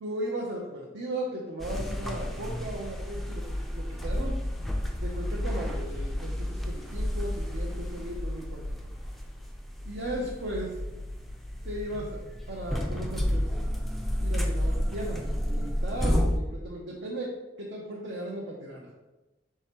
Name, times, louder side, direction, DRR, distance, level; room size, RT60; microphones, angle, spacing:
voice 1, 0.0-4.4 5.0-8.6 9.8-10.7 11.6-12.2 12.5-13.5 14.2-17.3 17.6-18.9, right 1 dB, 70° right, -3 dB, 0.6 m, -36 dB
sound 1, 1.6-16.4, equal, ahead, 0.3 m, -31 dB
4.7 x 3.2 x 2.9 m, 1.1 s
head